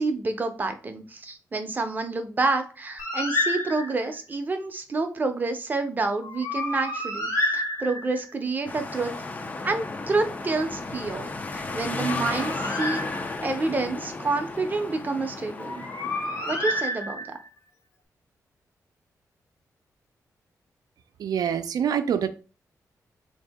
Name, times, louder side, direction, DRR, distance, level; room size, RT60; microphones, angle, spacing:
voice 1, 0.0-9.1 9.6-11.3 11.5-13.0 13.4-15.8 16.5-17.2, right 3 dB, 30° right, 6 dB, 0.5 m, -28 dB
Bird, 3.0-4.2 6.2-8.3 11.7-13.6 15.6-17.5, left 1 dB, 65° left, 1.2 m, -30 dB
sound 1, 8.7-16.8, left 3 dB, 25° left, 0.3 m, -34 dB
voice 2, 21.2-22.3, right 8 dB, 80° right, 10 dB, 0.4 m, -25 dB
3.7 x 2.7 x 3.4 m, 0.35 s
wide cardioid pair, 145°, 6 cm